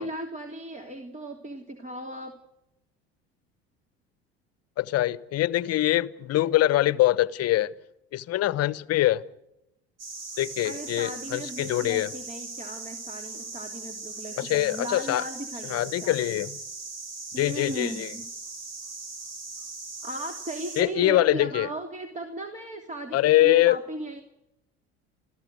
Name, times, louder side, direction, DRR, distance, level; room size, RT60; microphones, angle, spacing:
voice 1, 0.0-2.3 10.6-16.2 17.3-18.3 20.0-24.2, right 1 dB, 25° right, 3.1 m, -37 dB
voice 2, 4.8-7.7 8.1-9.2 10.4-12.1 14.4-15.2 15.7-16.6 17.4-18.1 20.8-21.7 23.1-23.8, left 15 dB, 50° left, 1.1 m, -23 dB
sound 1, 10.0-20.8, right 3 dB, 55° right, 6.4 m, -39 dB
29.0 x 14.5 x 8.2 m
hypercardioid pair, 75°, 31 cm